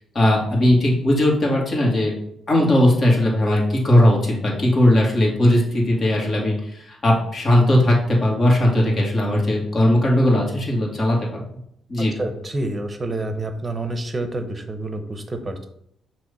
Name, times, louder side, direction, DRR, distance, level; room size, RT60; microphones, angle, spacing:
voice 1, 0.1-2.1 2.5-11.4 11.9-12.1, left 1 dB, 40° left, -2 dB, 2.4 m, -18 dB
voice 2, 12.0-15.6, right 2 dB, 25° right, 7 dB, 0.9 m, -28 dB
6.1 x 3.1 x 5.5 m, 0.75 s
cardioid pair, 90°, 0 cm